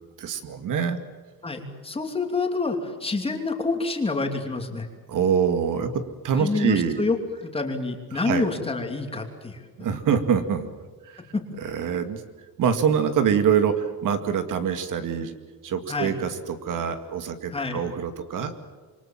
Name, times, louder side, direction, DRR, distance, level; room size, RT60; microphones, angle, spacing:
voice 1, 0.2-1.0 5.1-7.0 8.1-8.5 9.8-10.7 11.0-11.2 11.6-12.2 12.6-15.3 15.6-18.5, right 7 dB, 60° right, 8 dB, 2.3 m, -25 dB
voice 2, 1.4-4.9 6.4-9.7 11.3-11.4 15.9-16.2 17.5-17.8, left 3 dB, 15° left, 4 dB, 3.0 m, -27 dB
27.0 x 24.5 x 7.5 m, 1.5 s
cardioid pair, 175°, 36 cm